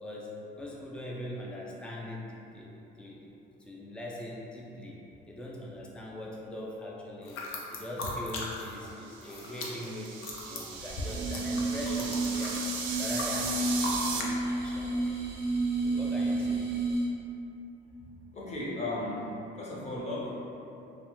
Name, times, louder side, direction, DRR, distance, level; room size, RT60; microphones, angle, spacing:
voice 1, 0.0-3.3 3.6-5.0 5.3-12.6 13.0-15.2 15.8-16.7, left 1 dB, 5° left, -3 dB, 0.3 m, -41 dB
sound 1, 7.2-8.9 9.1-14.3, left 2 dB, 85° left, 0.5 m, -39 dB
sound 2, 9.1-14.2, right 5 dB, 80° right, 0.4 m, -37 dB
sound 3, 10.7-17.2, right 2 dB, 30° right, 0.6 m, -31 dB
voice 2, 18.3-19.3 19.6-20.3, left 2 dB, 35° left, -6 dB, 0.6 m, -35 dB
2.7 x 2.1 x 3.0 m, 2.8 s
cardioid pair, 120°, 20 cm